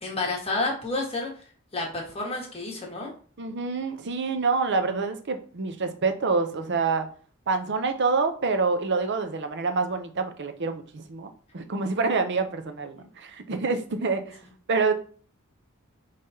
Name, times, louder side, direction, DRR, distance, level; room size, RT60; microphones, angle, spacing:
voice 1, 0.0-1.3 1.7-3.1 12.9-13.1 14.4-14.5, left 2 dB, 30° left, -1 dB, 1.4 m, -30 dB
voice 2, 3.4-7.1 7.5-14.4 14.7-14.9, right 4 dB, 55° right, 7 dB, 0.7 m, -27 dB
5.5 x 3.4 x 2.8 m, 0.42 s
head